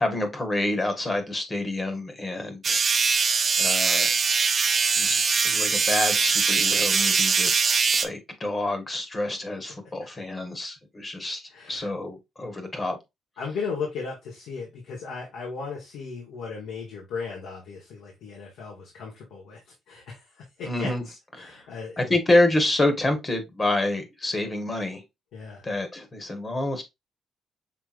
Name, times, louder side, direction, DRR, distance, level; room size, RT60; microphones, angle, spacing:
voice 1, 0.0-2.8 3.6-4.2 5.0-7.5 8.0-11.4 11.7-13.0 20.6-21.0 21.4-21.7 22.0-25.0 25.6-26.8, left 2 dB, 25° left, 1.2 m, -27 dB
sound 1, 2.6-8.1, right 5 dB, 40° right, 0.5 m, -22 dB
voice 2, 11.5-11.9 13.4-19.6 19.9-22.2 25.3-25.6, left 5 dB, 85° left, 1.4 m, -36 dB
5.7 x 3.4 x 2.5 m
cardioid pair, 90°, 0 cm